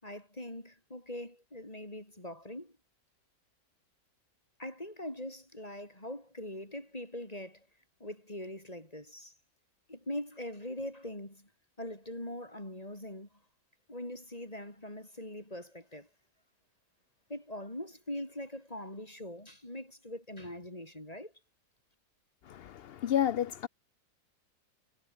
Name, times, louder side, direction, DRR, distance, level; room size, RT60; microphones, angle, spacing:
voice 1, 0.0-2.7 4.6-7.7 8.0-9.3 9.9-11.5 11.8-13.3 13.9-16.1 17.3-21.3, left 1 dB, 25° left, 5.8 m, -42 dB
voice 2, 22.4-23.7, left 10 dB, 80° left, 0.5 m, -31 dB
omnidirectional pair, 1.7 m